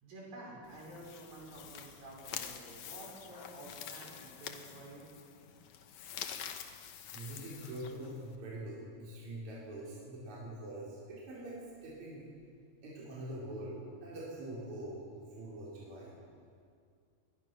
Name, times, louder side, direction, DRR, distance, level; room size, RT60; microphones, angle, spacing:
voice 1, 0.0-5.1, right 1 dB, 65° right, -3 dB, 7.0 m, -50 dB
sound 1, 0.6-8.4, left 9 dB, 65° left, 1.9 m, -47 dB
voice 2, 7.1-12.2 12.8-16.2, right 1 dB, 50° right, -7 dB, 5.5 m, -44 dB
21.5 x 21.0 x 6.2 m, 2.2 s
omnidirectional pair, 4.5 m